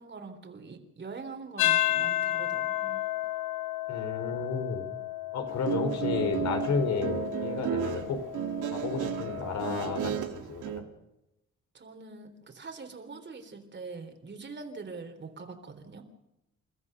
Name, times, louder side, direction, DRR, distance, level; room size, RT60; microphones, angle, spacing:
voice 1, 0.0-3.0 11.7-16.1, right 4 dB, 35° right, 6 dB, 3.5 m, -43 dB
sound 1, 1.6-10.1, left 13 dB, 85° left, 1.2 m, -32 dB
voice 2, 3.9-4.9 5.3-8.2 8.7-10.8, left 5 dB, 65° left, 6 dB, 4.5 m, -32 dB
Guitar, 5.5-10.8, right 10 dB, 80° right, 2.2 m, -33 dB
29.5 x 14.0 x 6.7 m, 0.90 s
cardioid pair, 90°, 30 cm